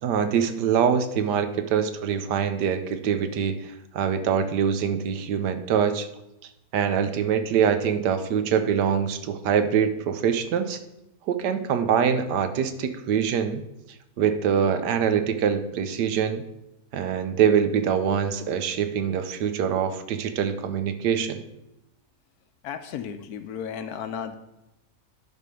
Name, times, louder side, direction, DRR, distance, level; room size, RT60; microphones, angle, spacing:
voice 1, 0.0-6.1 6.7-10.8 11.3-13.6 14.2-16.4 16.9-21.4, right 7 dB, 80° right, 9 dB, 1.3 m, -24 dB
voice 2, 22.6-24.4, left 8 dB, 70° left, 10 dB, 1.1 m, -34 dB
11.0 x 3.6 x 6.3 m, 0.89 s
omnidirectional pair, 1.8 m